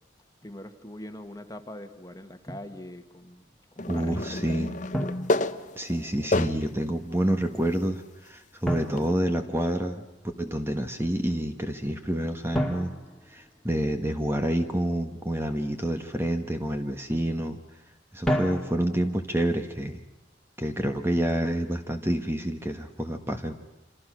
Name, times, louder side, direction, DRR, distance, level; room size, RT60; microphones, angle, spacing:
voice 1, 0.4-3.4 3.7-4.6, left 1 dB, 20° left, 7 dB, 1.7 m, -42 dB
Drum, 2.5-2.8 4.9-6.1 8.6-10.1 12.5-14.2 18.2-19.2, equal, 5° left, 2.2 m, -32 dB
sound 1, 3.8-6.8 7.5-7.6 9.0-9.1, left 2 dB, 40° left, 0.9 m, -29 dB
voice 2, 3.9-4.7 5.7-10.0 10.4-12.9 13.3-17.6 18.1-20.0 20.6-23.5, right 1 dB, 15° right, 6 dB, 1.5 m, -28 dB
27.0 x 27.0 x 6.3 m, 0.99 s
head